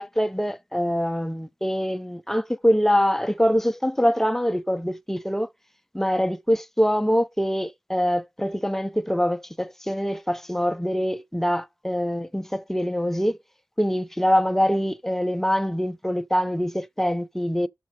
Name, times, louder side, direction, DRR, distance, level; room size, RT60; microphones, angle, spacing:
voice 1, 0.0-5.5 5.9-13.4 13.8-17.7, equal, 5° left, 0.5 m, -24 dB
6.5 x 4.3 x 6.2 m
cardioid pair, 55°, 7 cm